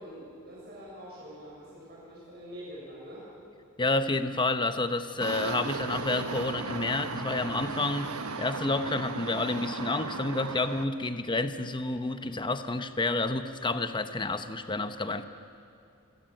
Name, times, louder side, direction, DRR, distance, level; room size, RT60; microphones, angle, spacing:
voice 1, 0.0-3.3, equal, 50° right, -6 dB, 6.9 m, -45 dB
voice 2, 3.8-8.1 8.4-15.2, left 2 dB, 20° left, 9 dB, 0.9 m, -29 dB
sound 1, 5.2-10.9, right 4 dB, 80° right, 1.2 m, -36 dB
26.5 x 17.0 x 7.8 m, 2.6 s
head